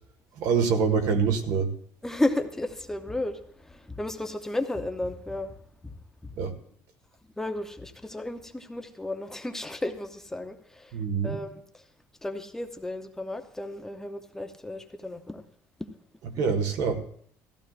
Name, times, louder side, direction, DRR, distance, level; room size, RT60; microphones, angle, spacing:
voice 1, 0.4-1.7 6.4-6.5 10.9-11.4 16.4-17.0, right 5 dB, 65° right, 5 dB, 1.6 m, -25 dB
voice 2, 2.0-3.4 3.7-5.5 5.8-5.9 7.4-10.9 11.2-11.5 12.2-15.4 15.8-15.9, left 1 dB, 5° left, 6 dB, 0.7 m, -33 dB
17.5 x 14.0 x 2.5 m, 0.62 s
cardioid pair, 150°, 6 cm